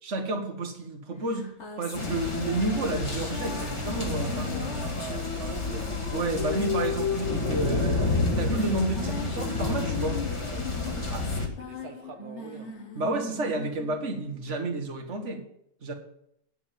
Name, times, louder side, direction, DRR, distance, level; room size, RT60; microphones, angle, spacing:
voice 1, 0.0-1.5 1.8-4.8 6.1-10.2 11.1-11.2 13.0-15.4 15.8-15.9, right 2 dB, 50° right, 4 dB, 1.9 m, -31 dB
sound 1, 1.3-15.0, left 6 dB, 50° left, 1.6 m, -37 dB
sound 2, 1.9-11.5, left 3 dB, 20° left, 1.7 m, -30 dB
voice 2, 4.7-6.0 10.4-12.8, right 6 dB, 85° right, 4 dB, 1.7 m, -44 dB
9.6 x 7.0 x 8.9 m, 0.73 s
omnidirectional pair, 1.6 m